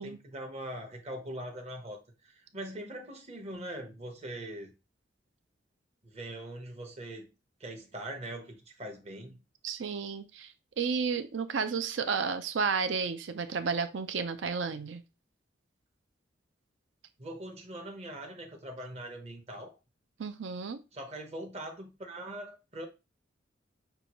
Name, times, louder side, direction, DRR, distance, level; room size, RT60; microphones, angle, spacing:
voice 1, 0.0-4.7 6.0-7.3 7.6-9.4 17.2-19.8 20.9-22.9, right 1 dB, 35° right, 1.0 m, -42 dB
voice 2, 9.6-15.0 20.2-20.8, right 5 dB, 70° right, 0.5 m, -32 dB
6.6 x 2.3 x 3.0 m
head